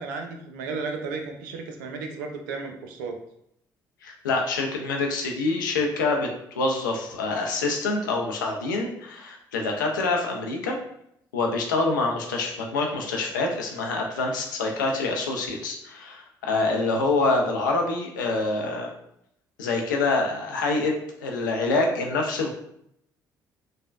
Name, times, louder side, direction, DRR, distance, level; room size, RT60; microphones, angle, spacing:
voice 1, 0.0-3.2, right 4 dB, 75° right, 4 dB, 0.4 m, -34 dB
voice 2, 4.0-6.3 6.6-10.8 11.3-18.9 19.6-20.9 21.2-22.5, left 3 dB, 85° left, 1 dB, 0.4 m, -26 dB
3.3 x 2.1 x 2.4 m, 0.74 s
hypercardioid pair, 50°, 10 cm